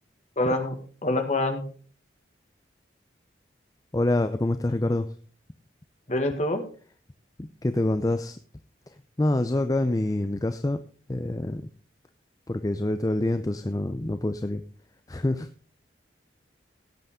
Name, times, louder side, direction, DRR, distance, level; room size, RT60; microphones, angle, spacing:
voice 1, 0.4-0.8 1.0-1.6 6.1-6.6, left 1 dB, 35° left, 6 dB, 1.7 m, -25 dB
voice 2, 3.9-5.1 7.4-8.4 9.2-10.8 11.1-11.6 12.5-14.6 15.1-15.5, left 1 dB, 20° left, 9 dB, 0.5 m, -26 dB
17.0 x 8.1 x 3.6 m, 0.40 s
head